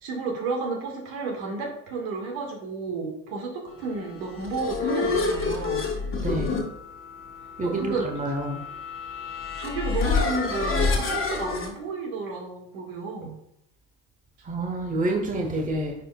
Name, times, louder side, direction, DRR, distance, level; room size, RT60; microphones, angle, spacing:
voice 1, 0.0-5.9 7.6-8.1 9.5-13.4, right 4 dB, 70° right, 0 dB, 2.1 m, -32 dB
sound 1, 4.2-11.7, left 4 dB, 35° left, 1.7 m, -28 dB
voice 2, 6.1-6.6 7.6-8.6 14.4-15.9, right 1 dB, 20° right, 2 dB, 1.2 m, -28 dB
10.0 x 4.5 x 2.4 m, 0.76 s
hypercardioid pair, 85°, 36 cm